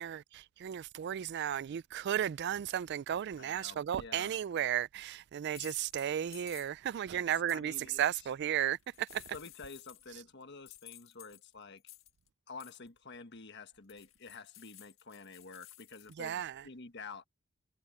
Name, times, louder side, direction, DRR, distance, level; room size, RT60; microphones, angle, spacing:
voice 1, 0.0-9.2 16.1-16.7, right 10 dB, 55° right, 0.3 m, -34 dB
voice 2, 3.4-4.3 7.1-7.2 7.5-8.0 9.3-11.8 12.5-17.2, left 4 dB, 55° left, 1.4 m, -49 dB
sound 1, 4.2-4.5 5.5-7.0 7.5-7.6 8.7-10.2 10.7-12.3 12.6-12.9 13.9-16.1, left 15 dB, 75° left, 1.5 m, -54 dB
head